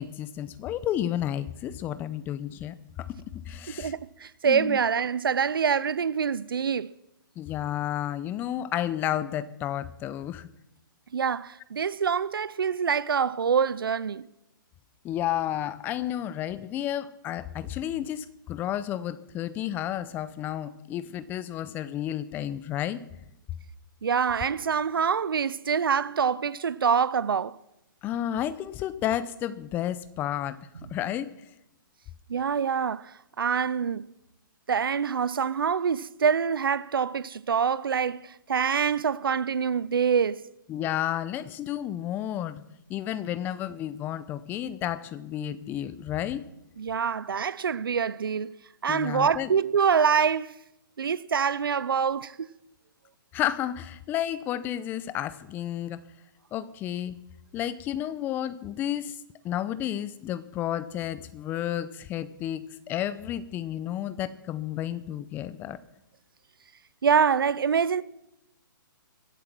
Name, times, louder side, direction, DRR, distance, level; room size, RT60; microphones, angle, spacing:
voice 1, 0.0-3.1 3.5-3.9 4.4-4.8 7.4-10.5 15.0-23.0 28.0-30.6 30.9-31.3 40.7-42.6 42.9-46.4 48.9-49.5 53.3-56.0 56.5-57.2 57.5-59.2 59.4-65.8, left 11 dB, 15° left, 0.6 m, -31 dB
voice 2, 3.8-6.9 11.1-14.2 24.0-27.5 32.3-34.1 34.7-40.4 46.8-48.5 48.8-50.5 51.0-52.5 67.0-68.0, right 6 dB, 85° right, 0.5 m, -25 dB
22.0 x 8.1 x 6.1 m
hypercardioid pair, 150°, 11 cm